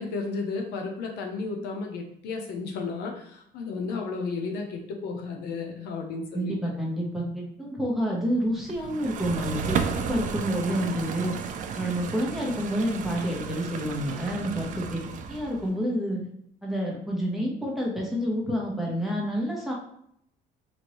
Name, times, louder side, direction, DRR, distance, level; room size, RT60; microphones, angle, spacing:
voice 1, 0.0-6.6, left 4 dB, 80° left, 2 dB, 0.7 m, -33 dB
voice 2, 6.3-11.3 11.7-15.0 15.3-16.2 16.6-19.7, equal, ahead, -3 dB, 1.0 m, -28 dB
sound 1, 8.7-15.7, right 6 dB, 50° right, 0.4 m, -33 dB
3.0 x 2.6 x 3.0 m, 0.70 s
cardioid pair, 110°, 17 cm